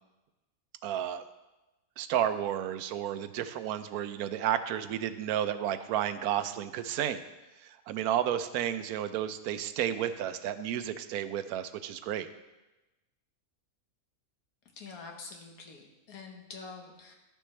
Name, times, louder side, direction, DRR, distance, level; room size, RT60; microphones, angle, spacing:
voice 1, 0.8-1.2 2.0-7.2 7.6-12.3, right 10 dB, 90° right, 12 dB, 1.1 m, -32 dB
voice 2, 14.7-17.1, left 4 dB, 80° left, 2 dB, 1.6 m, -46 dB
12.0 x 6.8 x 3.2 m, 1.1 s
omnidirectional pair, 1.5 m